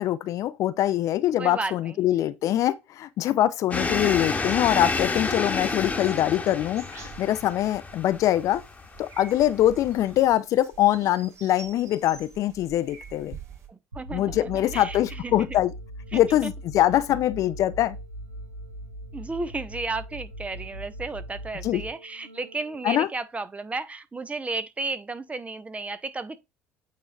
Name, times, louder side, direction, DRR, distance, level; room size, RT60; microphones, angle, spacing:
voice 1, 0.0-8.6 9.0-13.4 14.1-15.7 16.1-18.0 21.6-21.8 22.8-23.1, left 13 dB, 50° left, 0.5 m, -23 dB
voice 2, 1.4-2.0 13.7-15.6 16.1-16.5 19.1-26.4, right 3 dB, 20° right, 0.8 m, -33 dB
sound 1, 3.7-10.2, left 3 dB, 20° left, 1.2 m, -30 dB
sound 2, 4.1-13.7, right 6 dB, 45° right, 1.9 m, -48 dB
sound 3, 13.9-22.9, right 1 dB, 90° right, 1.0 m, -40 dB
8.6 x 3.2 x 3.7 m
figure-of-eight pair, 60°, 7 cm